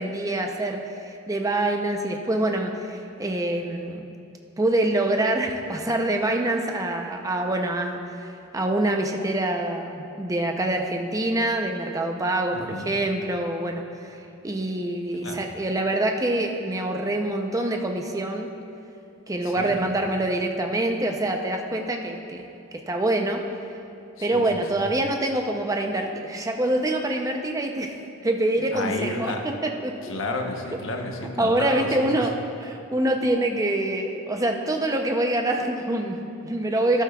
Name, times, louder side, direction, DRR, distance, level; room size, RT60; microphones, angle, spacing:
voice 1, 0.0-4.0 4.6-14.1 14.4-18.5 19.3-22.5 22.7-23.4 24.2-30.2 31.4-32.3 32.6-37.0, right 1 dB, 15° right, 3 dB, 0.6 m, -25 dB
voice 2, 12.5-12.9 15.1-15.4 19.4-19.8 24.2-24.9 28.6-29.5 30.0-32.3, left 2 dB, 65° left, 2 dB, 1.0 m, -32 dB
13.0 x 11.5 x 2.4 m, 2.7 s
head